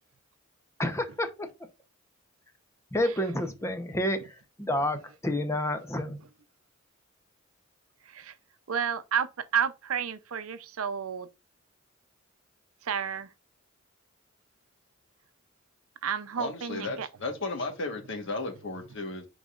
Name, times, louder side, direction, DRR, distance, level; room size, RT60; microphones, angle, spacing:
voice 1, 0.8-1.5 2.9-6.2, left 1 dB, 15° left, 0.8 m, -29 dB
voice 2, 8.0-8.3 8.7-11.3 12.8-13.3 16.0-17.1, right 7 dB, 90° right, 0.6 m, -31 dB
voice 3, 16.4-19.3, left 3 dB, 60° left, 1.4 m, -34 dB
10.0 x 3.9 x 2.4 m
head